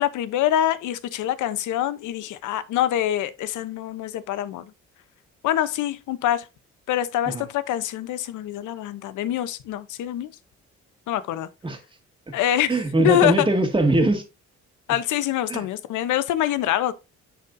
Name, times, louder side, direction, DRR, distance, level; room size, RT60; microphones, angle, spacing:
voice 1, 0.0-4.6 5.4-6.5 6.9-10.3 11.1-11.5 12.3-12.7 13.0-13.5 14.9-16.9, left 12 dB, 80° left, 0.7 m, -25 dB
voice 2, 12.7-14.2 15.5-15.7, right 2 dB, 15° right, 1.9 m, -21 dB
10.0 x 4.2 x 2.6 m
cardioid pair, 90°, 30 cm